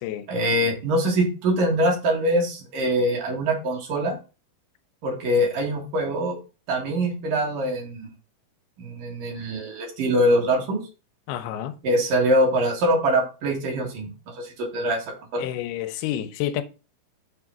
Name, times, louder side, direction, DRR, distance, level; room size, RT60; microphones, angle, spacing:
voice 1, 0.3-4.2 5.0-6.4 6.7-8.1 8.8-10.8 11.8-14.1 14.4-15.0 15.3-15.5, equal, 65° right, 3.3 m, -23 dB
voice 2, 11.3-11.7 15.4-16.6, left 11 dB, 85° left, 2.6 m, -29 dB
6.7 x 3.7 x 5.8 m
omnidirectional pair, 4.4 m